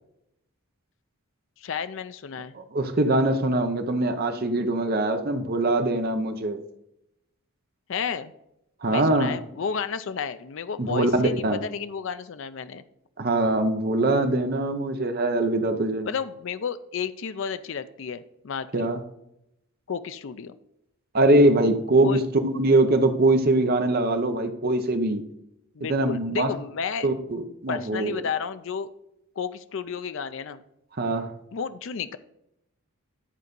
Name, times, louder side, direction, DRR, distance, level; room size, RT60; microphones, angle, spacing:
voice 1, 1.6-2.5 7.9-8.3 8.9-12.8 16.1-18.9 19.9-20.5 22.0-22.2 25.8-27.1 27.7-28.9 29.4-30.6 31.5-32.2, left 6 dB, 55° left, 12 dB, 0.4 m, -32 dB
voice 2, 2.5-6.6 8.8-9.3 10.8-11.6 13.2-16.1 18.7-19.0 21.1-25.2 25.9-26.5 27.0-28.2 31.0-31.3, right 2 dB, 45° right, 7 dB, 0.7 m, -22 dB
10.0 x 4.0 x 5.2 m, 0.81 s
head